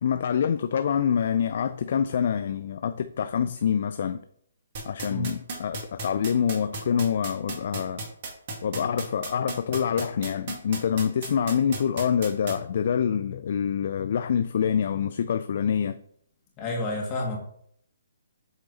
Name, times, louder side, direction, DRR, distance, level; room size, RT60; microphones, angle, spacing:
voice 1, 0.0-4.2 4.8-8.0 8.6-16.0, left 7 dB, 55° left, 0.3 m, -26 dB
sound 1, 4.7-12.5, right 3 dB, 45° right, 1.9 m, -33 dB
voice 2, 16.6-17.4, left 2 dB, 25° left, 1.9 m, -29 dB
7.9 x 3.8 x 4.0 m
figure-of-eight pair, 140°, 0 cm